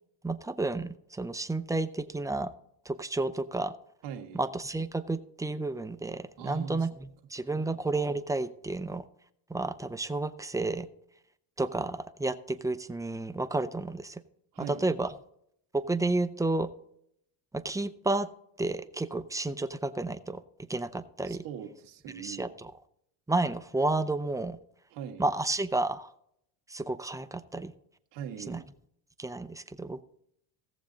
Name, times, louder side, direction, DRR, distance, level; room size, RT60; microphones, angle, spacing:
voice 1, 0.2-2.5 2.9-3.7 4.3-9.0 9.5-10.9 11.6-14.2 14.6-15.1 15.7-16.7 17.5-18.3 18.6-20.4 20.7-21.4 22.2-22.7 23.3-24.6 25.2-26.1 26.7-27.7 28.5-28.6 29.2-30.0, right 2 dB, 10° right, 10 dB, 0.5 m, -31 dB
voice 2, 4.0-4.4 6.4-7.1 7.5-7.7 14.5-14.9 21.2-22.5 24.9-25.3 28.1-28.6, right 8 dB, 75° right, 3 dB, 1.5 m, -41 dB
17.0 x 7.1 x 3.9 m, 0.73 s
cardioid pair, 115°, 44 cm